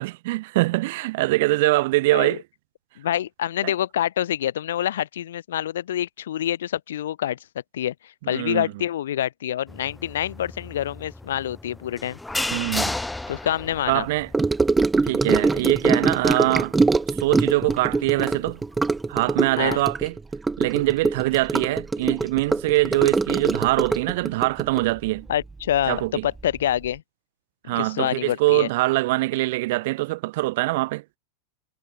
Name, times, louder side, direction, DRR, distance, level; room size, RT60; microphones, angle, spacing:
voice 1, 0.0-2.4 3.6-3.7 8.3-8.7 12.5-13.0 13.9-14.3 15.0-16.8 17.2-18.6 19.1-20.2 20.6-25.3 25.9-26.3 27.7-31.0, right 20 dB, 50° right, 0.3 m, -23 dB
voice 2, 3.0-7.4 7.7-12.2 13.3-14.1 19.6-19.8 25.3-27.0 27.6-28.7, left 11 dB, 60° left, 1.2 m, -26 dB
sound 1, 9.7-19.1, left 2 dB, 5° left, 1.5 m, -35 dB
Gurgling / Sink (filling or washing) / Trickle dribble, 14.3-26.0 26.2-26.6 26.8-26.9, right 3 dB, 10° right, 0.7 m, -23 dB
figure-of-eight pair, 90°, 0 cm